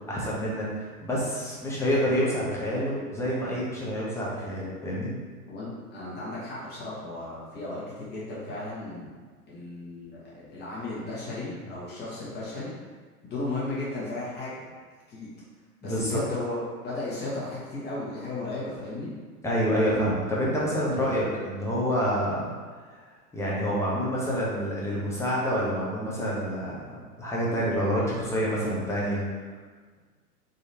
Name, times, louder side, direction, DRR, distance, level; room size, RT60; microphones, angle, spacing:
voice 1, 0.1-5.1 15.8-16.2 19.4-22.5 23.3-26.8 27.2-29.2, equal, 5° left, -6 dB, 0.8 m, -27 dB
voice 2, 5.5-9.1 9.5-12.7 13.2-14.7 15.1-15.3 15.8-19.1, left 2 dB, 20° left, -7 dB, 1.4 m, -35 dB
3.8 x 3.0 x 2.8 m, 1.4 s
hypercardioid pair, 105°, 46 cm